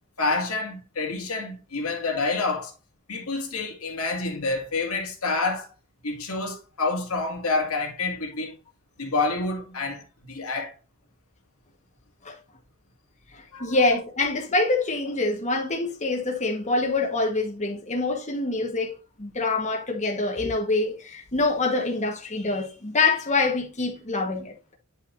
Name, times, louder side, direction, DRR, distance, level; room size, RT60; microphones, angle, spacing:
voice 1, 0.2-2.7 3.1-5.7 6.0-8.6 9.0-10.7 13.5-13.8, left 3 dB, 80° left, 2.2 m, -28 dB
voice 2, 13.3-24.6, left 3 dB, 35° left, 1.3 m, -25 dB
9.9 x 5.6 x 2.6 m
head